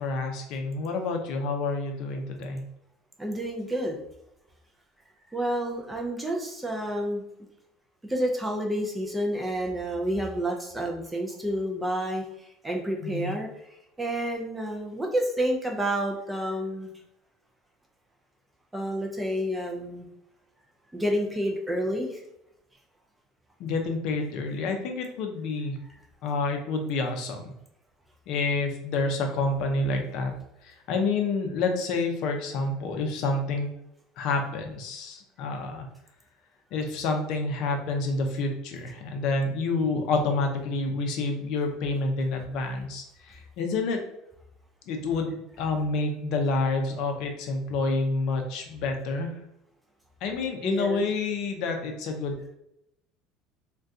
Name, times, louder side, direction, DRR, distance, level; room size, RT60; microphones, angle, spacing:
voice 1, 0.0-2.7 13.0-13.4 23.6-25.8 26.2-27.5 28.3-30.3 30.6-33.7 34.2-35.9 36.7-44.0 44.9-49.4 50.2-52.5, left 3 dB, 50° left, 4 dB, 0.5 m, -28 dB
voice 2, 3.2-4.0 5.3-7.2 8.1-12.2 12.6-13.5 14.0-16.9 18.7-20.1 20.9-22.2 50.6-51.0, right 1 dB, 5° right, 1 dB, 0.3 m, -29 dB
2.6 x 2.2 x 3.5 m, 0.80 s
cardioid pair, 175°, 0 cm